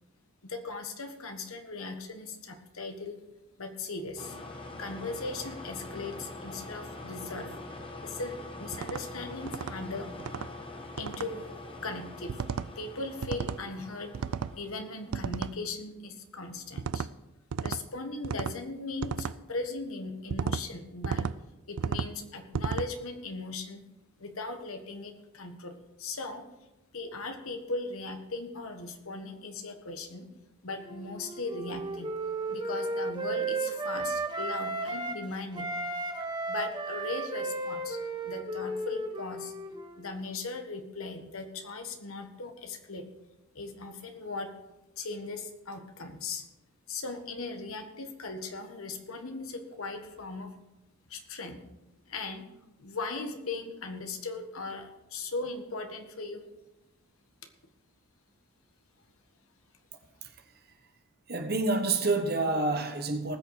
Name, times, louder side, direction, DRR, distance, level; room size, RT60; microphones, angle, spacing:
voice 1, 0.4-3.2 3.6-4.4 4.8-7.5 8.0-10.1 11.0-11.5 11.8-12.4 12.7-14.1 14.6-17.1 17.6-21.3 21.7-23.8 24.2-26.5 26.9-30.3 30.6-32.1 32.5-35.7 36.5-39.5 40.0-43.0 43.5-44.5 45.0-46.4 46.9-50.5 51.1-51.6 52.1-52.4 52.8-56.4, left 3 dB, 70° left, 1.5 m, -38 dB
sound 1, 4.2-15.4, left 2 dB, 25° left, 1.3 m, -44 dB
sound 2, 8.7-9.0 9.5-9.7 10.2-10.5 11.0-11.3 12.3-12.7 13.2-13.6 14.1-14.5 15.1-15.5 16.8-17.1 17.5-17.8 18.2-18.6 19.0-19.3 20.3-20.6 21.0-21.3 21.8-22.1 22.5-22.9, right 6 dB, 75° right, 0.4 m, -33 dB
Wind instrument woodwind instrument, 30.8-35.2 35.5-40.1, right 2 dB, 20° right, 1.0 m, -34 dB
voice 2, 61.3-63.4, right 3 dB, 45° right, 1.3 m, -28 dB
19.0 x 6.7 x 4.9 m
head